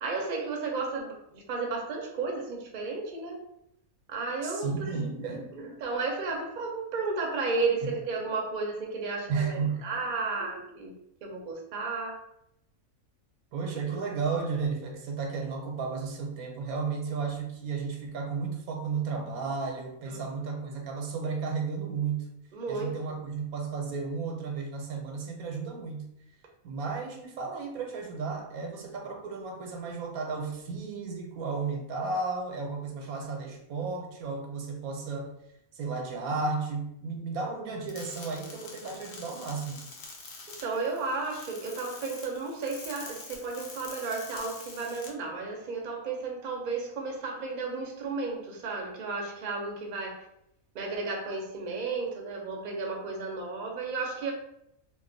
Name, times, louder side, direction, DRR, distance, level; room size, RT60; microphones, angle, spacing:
voice 1, 0.0-3.4 4.1-10.9 11.2-12.2 20.1-20.2 22.5-22.9 40.5-50.3 50.7-54.3, right 4 dB, 50° right, 0 dB, 0.6 m, -33 dB
voice 2, 4.4-5.4 7.8-7.9 9.3-9.9 13.5-22.3 22.7-26.1 26.6-35.3 35.7-39.8, right 4 dB, 85° right, 2 dB, 1.2 m, -33 dB
sound 1, 37.9-45.1, left 3 dB, 70° left, 1.1 m, -46 dB
2.9 x 2.0 x 3.8 m, 0.77 s
omnidirectional pair, 1.5 m